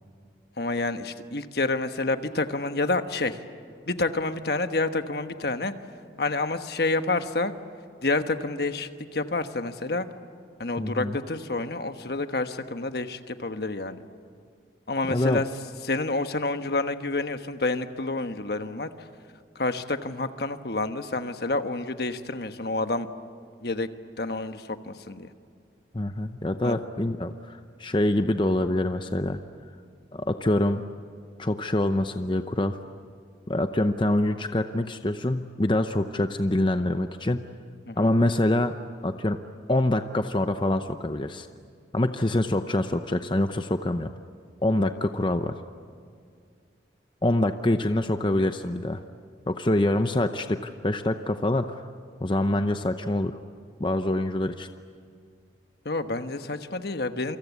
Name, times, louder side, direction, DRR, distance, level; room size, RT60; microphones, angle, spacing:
voice 1, 0.6-3.4 3.9-5.7 6.2-7.5 8.0-10.1 10.6-14.0 14.9-15.5 15.8-18.9 19.5-23.1 23.6-23.9 24.2-25.3 26.6-26.8 37.9-38.1 55.8-57.4, left 2 dB, 60° left, 8 dB, 1.3 m, -28 dB
voice 2, 10.8-11.2 15.1-15.4 25.9-29.4 30.1-30.8 31.4-32.8 33.5-37.4 38.0-38.8 39.0-39.4 39.7-41.5 41.9-44.1 44.6-45.6 47.2-49.0 49.5-51.8 52.2-53.4 53.8-54.7, left 1 dB, 25° left, 8 dB, 0.7 m, -25 dB
28.5 x 25.0 x 8.3 m, 2.2 s
head